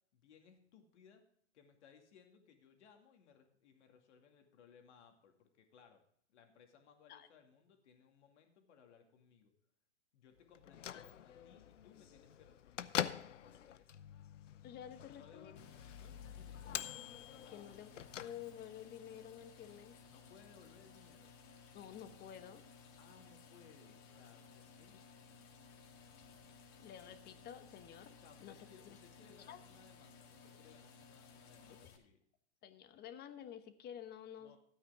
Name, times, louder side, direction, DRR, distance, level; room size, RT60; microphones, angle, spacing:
voice 1, 0.1-1.2 1.5-6.0 6.3-9.5 10.1-13.0 13.4-14.1 15.1-16.8 17.4-17.7 20.0-21.3 23.0-25.0 28.2-32.2 34.4-34.6, left 7 dB, 70° left, 4 dB, 2.5 m, -64 dB
Bell / Microwave oven, 10.5-18.8, left 10 dB, 90° left, 0.7 m, -45 dB
voice 2, 14.6-15.5 17.5-17.9 18.2-20.0 21.7-22.6 26.8-28.6 29.5-29.6 31.8-31.9 32.6-34.6, left 9 dB, 25° left, 10 dB, 1.1 m, -51 dB
sound 1, 15.6-32.0, left 5 dB, 45° left, 1.9 m, -59 dB
13.0 x 8.8 x 3.6 m, 0.64 s
hypercardioid pair, 120°, 36 cm